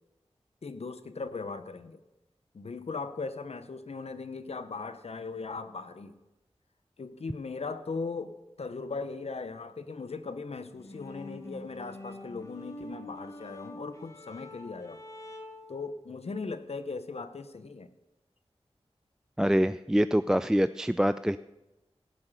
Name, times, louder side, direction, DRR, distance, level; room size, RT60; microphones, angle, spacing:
voice 1, 0.6-2.0 2.5-6.2 7.0-15.1 15.7-17.9, left 4 dB, 70° left, 11 dB, 0.8 m, -38 dB
sound 1, 10.7-15.8, left 1 dB, 30° left, 1.6 m, -45 dB
voice 2, 19.4-21.4, equal, 5° right, 13 dB, 0.3 m, -25 dB
17.0 x 5.8 x 6.6 m, 0.99 s
wide cardioid pair, 50°, 11 cm